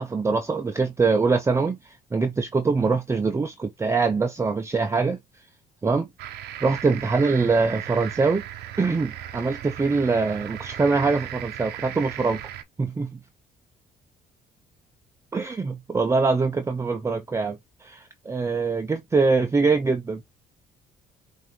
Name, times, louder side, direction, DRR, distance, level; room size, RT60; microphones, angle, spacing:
voice 1, 0.0-1.8 2.1-5.2 5.8-6.1 6.6-8.4 8.8-12.4 12.8-13.1 15.3-20.2, right 4 dB, 15° right, 0.5 m, -23 dB
sound 1, 6.2-12.6, right 11 dB, 75° right, 0.8 m, -37 dB
5.7 x 2.6 x 3.0 m
cardioid pair, 110°, 17 cm